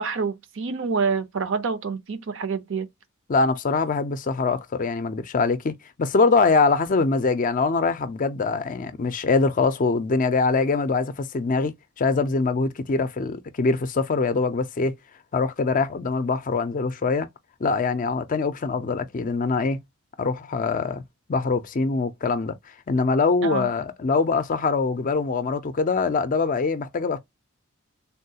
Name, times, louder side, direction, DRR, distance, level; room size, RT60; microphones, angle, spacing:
voice 1, 0.0-2.9 23.4-23.7, right 5 dB, 60° right, 0.6 m, -27 dB
voice 2, 3.3-15.0 15.3-17.3 17.6-19.8 20.2-21.0 21.3-22.6 22.9-27.2, left 4 dB, 40° left, 0.4 m, -23 dB
3.5 x 2.3 x 2.7 m
head